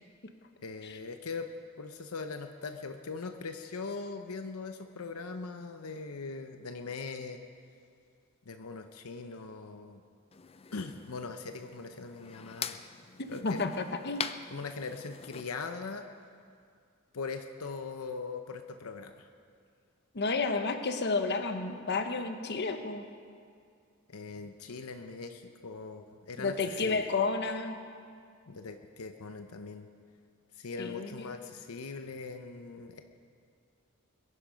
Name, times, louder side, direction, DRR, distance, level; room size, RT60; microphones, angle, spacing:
voice 1, 0.6-1.5 1.8-7.4 8.5-10.0 10.7-12.8 13.3-13.6 14.5-16.1 17.1-19.3 24.1-27.0 28.5-29.9 30.6-33.0, left 4 dB, 80° left, 7 dB, 0.8 m, -41 dB
sound 1, 10.3-15.5, left 7 dB, 25° left, 0.4 m, -43 dB
voice 2, 13.2-14.2 20.1-23.0 26.4-27.8 30.8-31.1, left 3 dB, 50° left, 7 dB, 1.0 m, -31 dB
22.0 x 11.0 x 5.1 m, 2.2 s
head